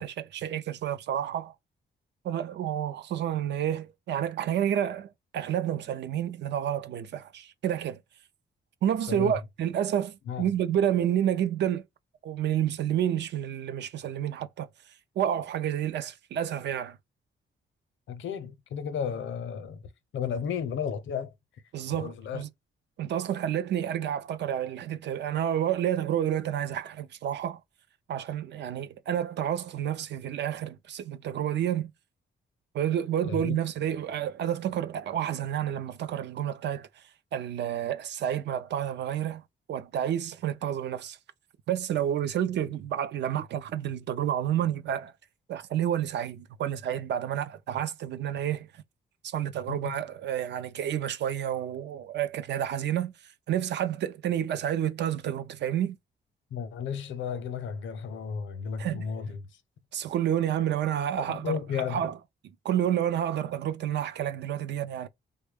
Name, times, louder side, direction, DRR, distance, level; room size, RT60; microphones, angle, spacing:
voice 1, 0.0-1.5 2.2-8.0 8.8-11.8 12.2-14.7 15.2-17.0 21.7-22.5 23.0-27.6 28.1-31.9 32.7-36.9 37.3-39.4 39.7-41.2 41.7-45.1 45.5-48.7 49.2-53.1 53.5-56.0 58.8-59.0 59.9-62.2 62.6-65.1, right 10 dB, 65° right, 0.4 m, -29 dB
voice 2, 9.1-9.4 10.3-10.5 18.1-19.8 20.1-21.3 21.9-22.4 33.2-33.6 49.7-49.9 56.5-59.4 61.3-62.0, left 7 dB, 85° left, 0.6 m, -33 dB
3.4 x 2.1 x 3.3 m
wide cardioid pair, 170°, 20 cm